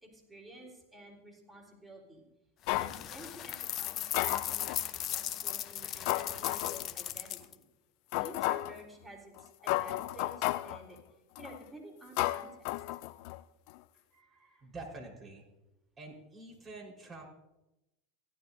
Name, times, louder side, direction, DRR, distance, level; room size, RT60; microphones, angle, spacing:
voice 1, 0.0-2.2 2.7-4.8 5.1-7.6 8.2-11.0 11.4-12.5, right 1 dB, 10° right, 0 dB, 4.0 m, -52 dB
sound 1, 2.7-3.0 3.9-4.8 5.4-5.6 6.1-6.9 7.4-7.5 8.1-8.8 9.4-9.5 9.7-10.8 11.4-11.6 12.2-13.4 13.7-13.8, left 17 dB, 60° left, 0.4 m, -33 dB
sound 2, 2.7-7.5, left 12 dB, 45° left, 0.8 m, -37 dB
voice 2, 14.1-15.4 16.0-17.2, right 2 dB, 25° right, -1 dB, 4.5 m, -47 dB
16.5 x 12.0 x 2.7 m, 0.96 s
hypercardioid pair, 100°, 0 cm